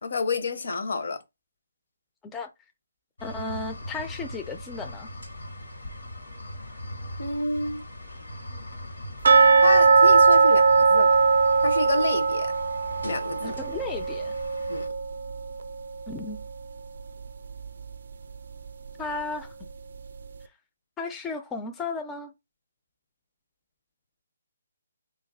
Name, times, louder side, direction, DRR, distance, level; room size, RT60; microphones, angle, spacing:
voice 1, 0.0-1.2 7.2-7.8 9.6-11.2 11.6-12.5 13.0-13.6 14.7-14.9, left 3 dB, 65° left, 0.6 m, -29 dB
sound 1, 3.2-14.9, left 1 dB, 90° left, 1.3 m, -40 dB
voice 2, 3.2-5.1 13.4-14.3 16.1-16.4 19.0-19.5 21.0-22.3, left 3 dB, 10° left, 0.3 m, -34 dB
sound 2, 9.2-16.1 16.4-16.5 17.0-17.1 17.6-17.7, right 4 dB, 65° right, 0.4 m, -20 dB
2.6 x 2.3 x 3.4 m
hypercardioid pair, 155°, 0 cm